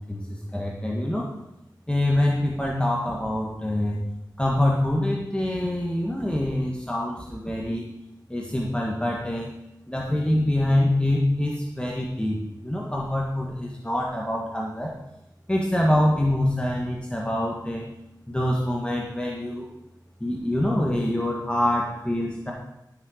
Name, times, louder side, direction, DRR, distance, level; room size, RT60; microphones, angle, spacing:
voice 1, 0.1-1.3 1.9-4.0 4.4-7.8 8.3-9.5 9.9-14.9 15.5-17.9 18.3-19.7 20.2-22.5, left 1 dB, 15° left, -2 dB, 1.6 m, -25 dB
13.0 x 6.4 x 5.0 m, 0.88 s
wide cardioid pair, 60°, 8 cm